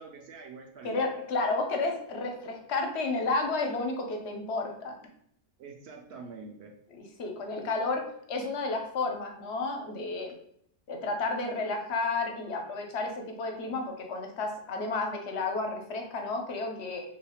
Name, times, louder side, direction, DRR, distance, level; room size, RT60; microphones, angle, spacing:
voice 1, 0.0-1.0 5.6-6.7, right 4 dB, 65° right, 2 dB, 0.8 m, -45 dB
voice 2, 0.8-5.0 6.9-8.0 8.3-10.3 10.9-17.0, left 3 dB, 70° left, 2 dB, 0.9 m, -31 dB
2.8 x 2.4 x 4.2 m, 0.69 s
omnidirectional pair, 1.2 m